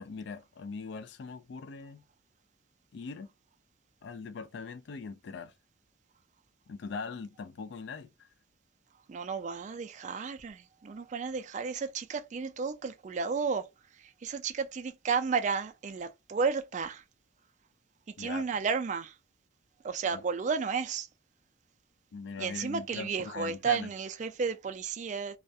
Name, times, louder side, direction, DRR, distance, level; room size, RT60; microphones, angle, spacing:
voice 1, 0.0-2.0 2.9-3.3 4.0-5.5 6.7-8.3 18.2-18.4 20.1-20.2 22.1-23.9, left 4 dB, 60° left, 0.3 m, -41 dB
voice 2, 9.1-13.7 14.0-17.0 18.2-19.1 19.8-21.1 22.4-25.4, right 5 dB, 35° right, 0.3 m, -32 dB
2.3 x 2.1 x 2.6 m
head